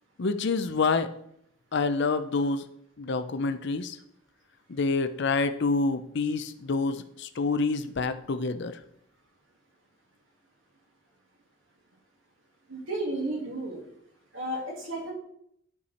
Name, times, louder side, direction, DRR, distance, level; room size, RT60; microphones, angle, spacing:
voice 1, 0.2-1.1 1.7-2.7 3.0-4.0 4.7-8.8, left 4 dB, 55° left, 10 dB, 0.5 m, -27 dB
voice 2, 12.7-13.8 14.3-15.1, right 1 dB, 70° right, -1 dB, 2.4 m, -32 dB
11.0 x 4.7 x 4.2 m, 0.74 s
head